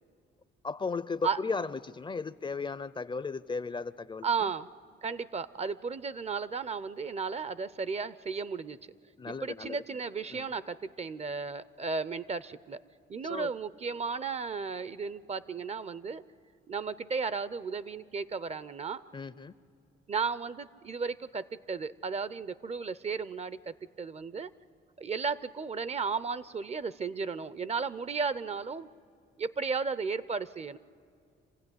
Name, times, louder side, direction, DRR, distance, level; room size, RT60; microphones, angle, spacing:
voice 1, 0.6-4.3 9.2-9.8 10.3-10.5 13.2-13.5 19.1-19.5, left 4 dB, 25° left, 16 dB, 0.5 m, -35 dB
voice 2, 4.2-4.7 5.0-8.8 9.3-12.8 13.1-16.2 16.7-19.0 20.1-24.5 25.0-28.9 29.4-30.8, right 5 dB, 35° right, 17 dB, 0.6 m, -34 dB
26.0 x 16.0 x 9.7 m, 2.3 s
cardioid pair, 90°, 20 cm